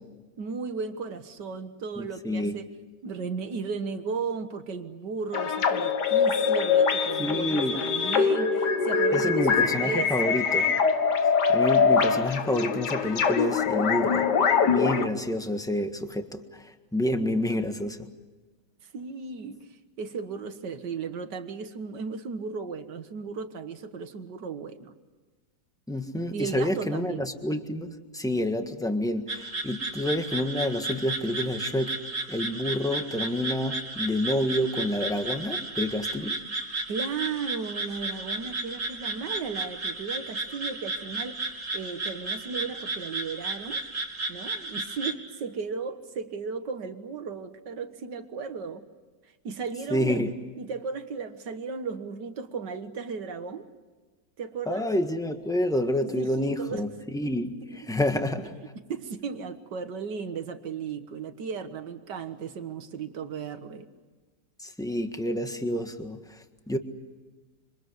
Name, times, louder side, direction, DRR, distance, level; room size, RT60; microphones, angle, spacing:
voice 1, 0.4-2.7 3.0-10.4 18.9-19.7 20.0-24.9 26.3-27.3 36.9-41.4 41.7-43.8 44.3-48.9 49.4-53.7 54.4-54.9 56.0-56.9 57.7-57.9 58.9-63.9, right 5 dB, 90° right, 9 dB, 2.1 m, -35 dB
voice 2, 2.0-2.5 7.2-7.8 9.1-10.7 11.5-14.3 14.7-18.0 25.9-32.0 32.3-36.4 49.9-50.3 54.7-58.6 64.6-66.8, left 1 dB, ahead, 6 dB, 1.5 m, -28 dB
sound 1, 5.3-15.1, left 5 dB, 75° left, 2.1 m, -23 dB
sound 2, 29.3-45.1, right 2 dB, 45° right, 3.1 m, -34 dB
27.0 x 25.5 x 8.1 m, 1.3 s
omnidirectional pair, 1.8 m